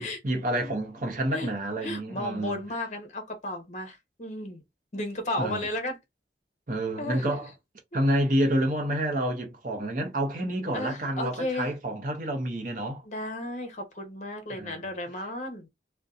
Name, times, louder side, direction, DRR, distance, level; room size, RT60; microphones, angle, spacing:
voice 1, 0.0-2.6 5.4-5.7 6.7-7.5 7.9-13.0 14.5-14.8, right 1 dB, 50° right, 0.7 m, -29 dB
voice 2, 1.8-4.6 4.9-6.0 7.0-7.3 10.7-11.7 13.1-15.7, left 1 dB, 40° left, 0.7 m, -34 dB
2.6 x 2.2 x 2.4 m
head